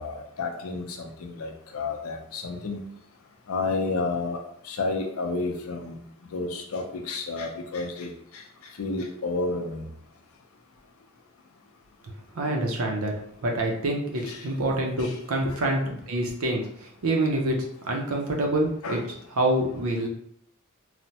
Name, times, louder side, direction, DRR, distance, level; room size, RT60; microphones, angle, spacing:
voice 1, 0.0-2.8 3.5-4.4 4.6-6.0 6.3-8.1 8.8-9.8 14.2-14.4 15.0-15.2 15.4-15.6 18.8-19.0, left 3 dB, 80° left, 3 dB, 0.5 m, -31 dB
voice 2, 12.3-13.1 13.4-15.8 16.1-17.6 17.8-19.0 19.4-20.1, right 1 dB, 75° right, 1 dB, 0.6 m, -26 dB
3.2 x 2.1 x 2.7 m, 0.68 s
head